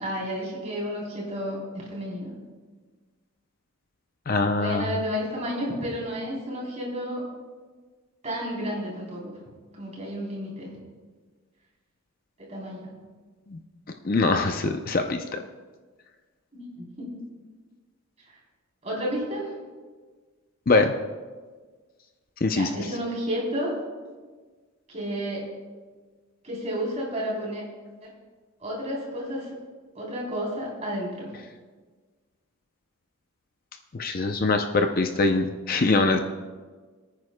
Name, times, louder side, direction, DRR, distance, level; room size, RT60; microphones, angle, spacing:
voice 1, 0.0-2.3 4.6-7.2 8.2-9.4 9.7-10.7 12.5-12.9 16.5-17.1 18.8-19.5 22.5-23.8 24.9-25.5 26.4-27.6 28.0-28.1 28.6-29.5 29.9-31.3, equal, 30° right, -3 dB, 3.5 m, -31 dB
voice 2, 4.3-4.9 13.5-13.6 14.0-15.4 20.7-20.9 22.4-22.7 33.9-36.2, left 3 dB, 40° left, 5 dB, 0.5 m, -23 dB
23.0 x 9.4 x 2.2 m, 1.4 s
head